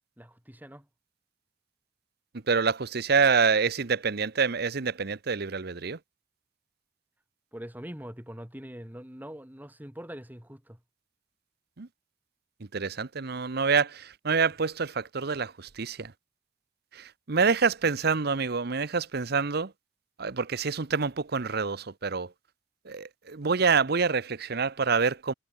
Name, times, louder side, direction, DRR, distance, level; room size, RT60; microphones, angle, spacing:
voice 1, 0.2-0.9 7.5-10.8, equal, 10° right, 3.7 m, -43 dB
voice 2, 2.5-6.0 11.8-11.9 12.7-16.1 16.9-19.7 20.2-22.3 22.9-25.3, right 5 dB, 60° right, 0.9 m, -27 dB
head